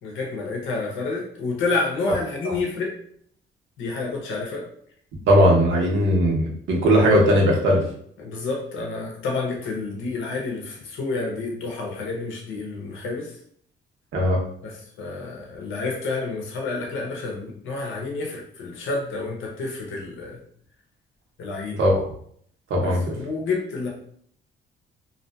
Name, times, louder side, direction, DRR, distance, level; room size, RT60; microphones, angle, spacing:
voice 1, 0.0-2.9 3.8-4.6 8.2-13.3 14.6-20.4 21.4-21.8 22.8-23.9, left 3 dB, 80° left, -1 dB, 0.7 m, -29 dB
voice 2, 5.3-7.8 14.1-14.4 21.8-22.1 22.7-23.1, equal, 75° right, -1 dB, 0.8 m, -18 dB
2.7 x 2.3 x 2.2 m, 0.64 s
cardioid pair, 90°, 20 cm